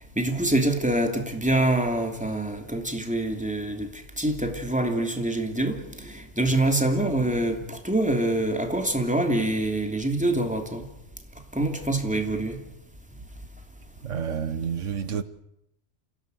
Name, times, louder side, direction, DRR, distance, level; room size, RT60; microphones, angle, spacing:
voice 1, 0.2-10.9 11.5-12.6, right 1 dB, 5° right, 2.9 m, -25 dB
voice 2, 14.0-15.2, right 7 dB, 80° right, 1.5 m, -29 dB
28.0 x 17.0 x 8.0 m
omnidirectional pair, 1.2 m